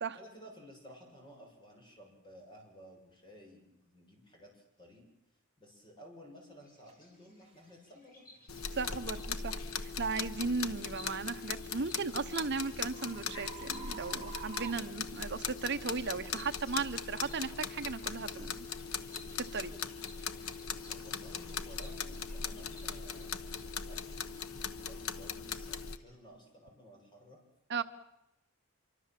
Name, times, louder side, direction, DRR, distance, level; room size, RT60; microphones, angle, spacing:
voice 1, 0.1-5.0 5.6-8.2 20.9-27.4, equal, 20° left, 1 dB, 6.8 m, -55 dB
Bird vocalization bird call bird song, 6.6-26.2, left 2 dB, 40° left, 6.7 m, -59 dB
sound 1, 6.9-7.0 7.6-7.8 8.4-8.6 11.2-15.7, right 8 dB, 30° right, 1.2 m, -50 dB
sound 2, 8.5-26.0, left 6 dB, 80° left, 1.2 m, -40 dB
voice 2, 8.7-18.7 19.5-19.7 27.7-27.8, right 4 dB, 55° right, 9 dB, 0.9 m, -36 dB
26.0 x 24.5 x 7.6 m, 0.85 s
head